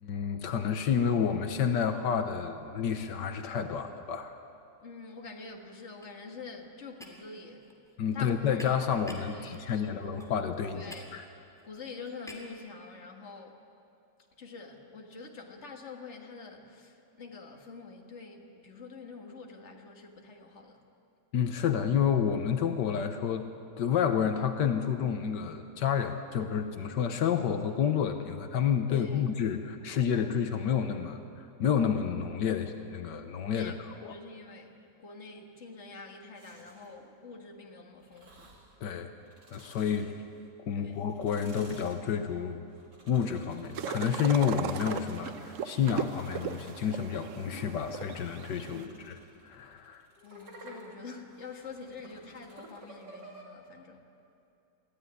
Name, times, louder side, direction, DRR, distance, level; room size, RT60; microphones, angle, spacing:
voice 1, 0.0-4.4 8.0-11.3 21.3-23.5 23.8-34.1 38.8-39.1 39.5-40.1 40.7-42.6 43.1-49.2 49.4-50.0, left 7 dB, 85° left, 7 dB, 1.6 m, -30 dB
voice 2, 4.8-7.8 8.1-8.9 9.3-10.1 10.7-11.1 11.6-13.6 14.4-20.8 28.9-29.3 33.5-33.8 34.1-38.6 40.7-41.0 48.6-49.0 50.2-54.0, left 4 dB, 40° left, 2 dB, 2.1 m, -46 dB
sound 1, 4.8-5.1 5.4-12.6, left 1 dB, ahead, 2.8 m, -51 dB
sound 2, 36.4-37.0 38.0-38.8 39.2-40.5 40.9-47.2 47.7-53.4, right 1 dB, 80° right, 3.5 m, -54 dB
sound 3, 43.7-48.8, right 8 dB, 55° right, 1.0 m, -38 dB
23.5 x 15.5 x 9.8 m, 2.6 s
omnidirectional pair, 1.8 m